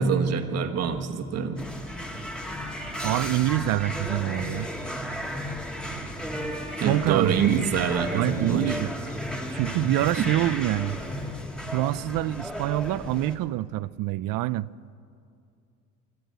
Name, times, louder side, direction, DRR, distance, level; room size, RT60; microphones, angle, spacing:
voice 1, 0.0-1.6 6.8-8.8 9.8-10.3, right 6 dB, 50° right, 7 dB, 1.4 m, -26 dB
sound 1, 1.6-13.4, equal, 5° left, 1.4 m, -34 dB
voice 2, 3.0-4.7 6.8-7.6 8.1-8.9 9.5-11.0 11.7-14.7, right 16 dB, 80° right, 19 dB, 0.5 m, -26 dB
24.0 x 14.0 x 8.0 m, 2.5 s
cardioid pair, 170°, 32 cm